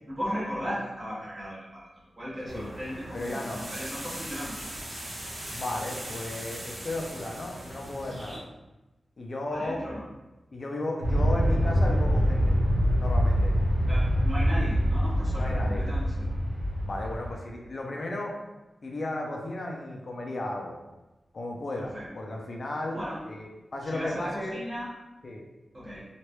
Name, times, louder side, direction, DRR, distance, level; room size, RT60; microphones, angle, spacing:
voice 1, 0.1-4.6 9.5-10.0 13.9-16.3 21.8-22.0 22.9-23.2 23.8-24.9 25.7-26.0, equal, 30° right, -8 dB, 1.4 m, -36 dB
sound 1, 2.5-8.4, right 1 dB, 45° right, 1.1 m, -40 dB
voice 2, 3.1-3.6 5.5-8.4 9.2-9.8 10.5-12.6 13.0-13.5 15.4-15.8 16.8-18.3 18.8-20.8 21.3-23.0 23.3-24.6 25.2-25.4, left 2 dB, 55° left, 0 dB, 0.5 m, -34 dB
Aircraft, 11.0-17.3, equal, 90° right, 0.8 m, -24 dB
3.1 x 2.5 x 3.0 m, 1.1 s
wide cardioid pair, 90°, 0 cm